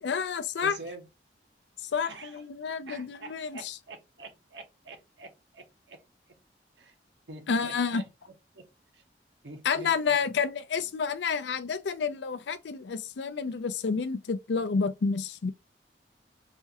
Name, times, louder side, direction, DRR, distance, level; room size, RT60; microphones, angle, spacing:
voice 1, 0.0-0.8 1.9-3.7 7.5-8.0 9.6-15.5, left 5 dB, 80° left, 0.5 m, -29 dB
voice 2, 0.6-1.1 2.0-2.4 2.9-6.0 6.3-6.4 6.8-6.9 7.3-8.1 8.5-8.7 8.9-9.0 9.4-10.2, right 2 dB, 85° right, 0.9 m, -46 dB
4.2 x 2.3 x 2.8 m
head